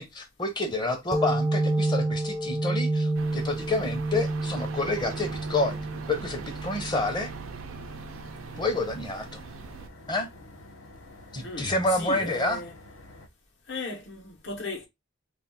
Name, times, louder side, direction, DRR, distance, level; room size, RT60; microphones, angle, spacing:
voice 1, 0.0-5.8 6.1-7.3 8.6-9.4 10.1-10.3 11.3-12.6, left 2 dB, 20° left, 0.6 m, -29 dB
sound 1, 1.1-8.4, right 2 dB, 15° right, 0.3 m, -30 dB
sound 2, 3.1-9.9, right 5 dB, 80° right, 0.4 m, -41 dB
sound 3, 4.9-13.3, left 1 dB, 85° left, 0.7 m, -49 dB
voice 2, 11.4-12.7 13.7-14.9, left 3 dB, 60° left, 0.9 m, -36 dB
2.4 x 2.3 x 3.7 m
head